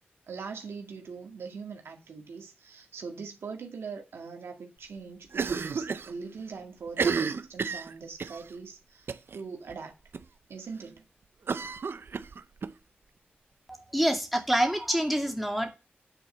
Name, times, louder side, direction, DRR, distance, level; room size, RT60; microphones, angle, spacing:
voice 1, 0.3-10.0 10.5-11.0, right 5 dB, 90° right, 1.8 m, -41 dB
Cough, 5.3-6.1 6.4-6.5 6.9-8.4 9.1-9.4 9.7-9.8 10.1-10.2 11.5-12.7, right 5 dB, 70° right, 0.6 m, -31 dB
voice 2, 13.9-15.7, right 1 dB, ahead, 2.1 m, -26 dB
9.2 x 4.5 x 7.3 m
cardioid pair, 50°, 4 cm